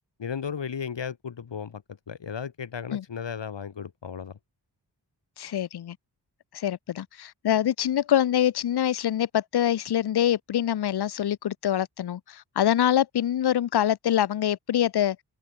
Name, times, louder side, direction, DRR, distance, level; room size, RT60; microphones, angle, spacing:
voice 1, 0.2-1.8 2.1-4.4, left 7 dB, 80° left, 3.5 m, -35 dB
voice 2, 5.4-6.0 6.5-15.2, left 10 dB, 65° left, 0.7 m, -25 dB
wide cardioid pair, 130°, 42 cm